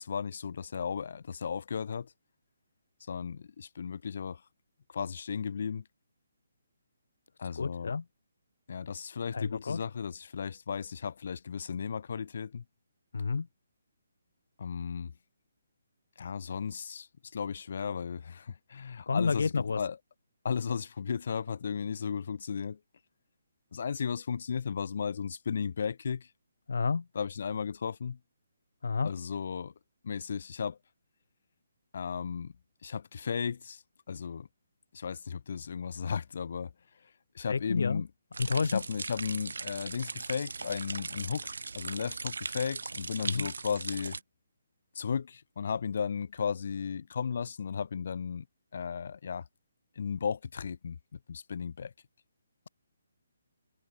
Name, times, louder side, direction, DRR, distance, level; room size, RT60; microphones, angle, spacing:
voice 1, 0.0-2.1 3.1-4.4 4.9-5.8 7.4-7.9 8.7-12.6 14.6-15.1 16.2-20.0 20.4-22.8 23.7-26.3 27.1-28.2 29.0-29.7 30.0-30.8 31.9-32.5 32.8-33.8 34.1-34.5 34.9-36.7 37.0-38.1 38.6-44.2 44.9-48.5 48.7-49.5 50.0-51.9, left 6 dB, 45° left, 3.9 m, -35 dB
voice 2, 7.6-8.0 9.3-9.8 13.1-13.5 19.1-19.8 26.7-27.0 28.8-29.1 37.5-38.0 38.4-38.8 43.2-43.5, left 5 dB, 70° left, 2.3 m, -30 dB
sound 1, 38.3-44.2, right 4 dB, 85° right, 1.3 m, -39 dB
hypercardioid pair, 175°, 0 cm